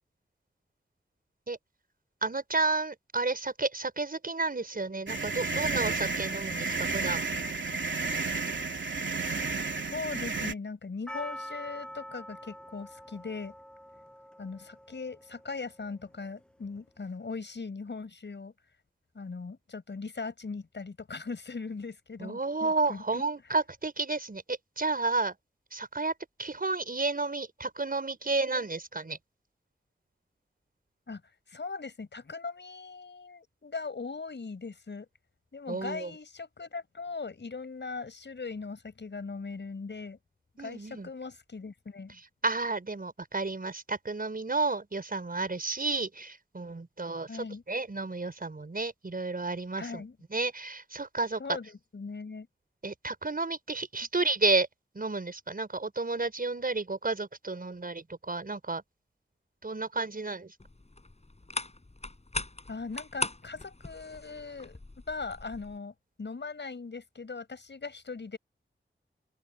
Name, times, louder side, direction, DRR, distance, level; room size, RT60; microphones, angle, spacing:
voice 1, 2.2-7.2 22.2-25.3 25.7-26.1 26.4-29.2 35.7-36.1 40.6-41.1 42.4-50.0 50.3-51.4 52.8-54.7 54.9-58.8 59.6-60.5, right 3 dB, 45° right, 5.9 m, -31 dB
sound 1, 5.1-10.5, right 3 dB, 65° right, 3.0 m, -32 dB
voice 2, 9.9-13.5 14.4-18.5 19.1-23.2 31.1-31.2 31.5-35.1 35.5-40.2 40.6-42.2 47.3-47.6 49.8-50.2 51.4-52.5 62.7-64.8 65.1-68.4, left 4 dB, 65° left, 5.8 m, -39 dB
Percussion, 11.1-16.0, equal, 5° left, 7.8 m, -45 dB
sound 2, 60.6-65.8, left 2 dB, 35° left, 5.9 m, -40 dB
open air
cardioid pair, 50°, 20 cm